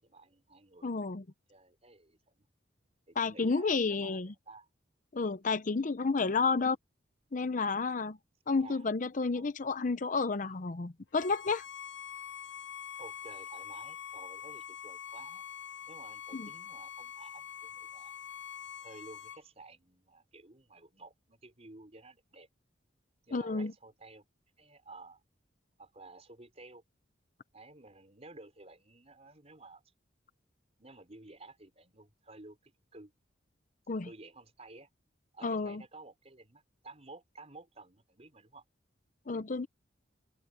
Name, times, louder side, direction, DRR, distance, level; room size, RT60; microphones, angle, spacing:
voice 1, 0.0-1.1 1.5-2.5 3.1-4.7 6.4-6.6 8.5-8.8 9.3-9.5 13.0-15.4 15.9-18.1 18.8-22.5 23.2-24.2 24.6-25.2 25.8-26.8 27.5-29.9 30.8-33.1 33.9-34.9 35.3-38.6, right 2 dB, 35° right, 4.7 m, -53 dB
voice 2, 0.8-1.2 3.2-4.3 5.1-6.8 7.3-8.2 8.5-11.7 16.3-16.5 23.3-23.7 33.9-34.1 35.4-35.8 39.3-39.7, left 4 dB, 45° left, 0.7 m, -31 dB
Bowed string instrument, 11.2-19.4, left 8 dB, 70° left, 1.0 m, -45 dB
open air
head